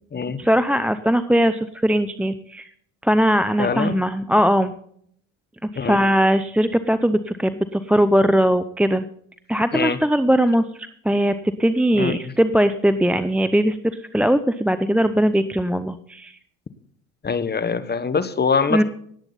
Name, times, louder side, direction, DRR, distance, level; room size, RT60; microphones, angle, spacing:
voice 1, 0.4-2.7 3.0-4.7 5.7-9.1 9.5-10.6 11.0-11.3 11.6-16.4 18.7-18.8, equal, 5° right, 11 dB, 0.6 m, -20 dB
voice 2, 3.6-4.0 5.8-6.0 9.7-10.0 11.9-12.2 17.2-18.8, left 5 dB, 25° left, 13 dB, 1.3 m, -23 dB
18.0 x 8.9 x 4.0 m, 0.64 s
supercardioid pair, 85°, 40 cm